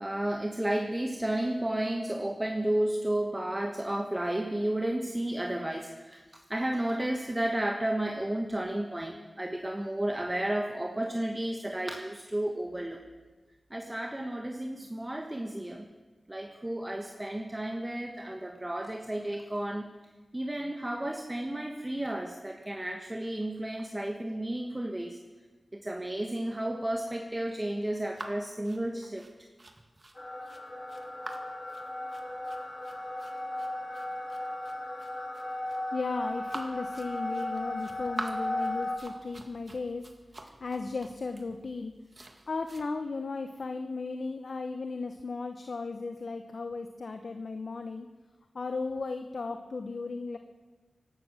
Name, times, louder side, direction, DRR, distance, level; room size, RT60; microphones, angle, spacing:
voice 1, 0.0-6.2 6.5-13.0 13.7-15.9 16.3-19.9 20.3-25.2 25.7-29.3, right 1 dB, 25° right, 3 dB, 1.4 m, -32 dB
sound 1, 28.1-42.8, right 2 dB, 45° right, 2.0 m, -46 dB
sound 2, 30.1-39.0, left 1 dB, 30° left, 3.2 m, -36 dB
voice 2, 35.9-40.1 40.6-41.9 42.5-48.1 48.5-50.4, left 3 dB, 70° left, 7 dB, 0.8 m, -35 dB
17.0 x 12.0 x 6.5 m, 1.3 s
cardioid pair, 40°, 0 cm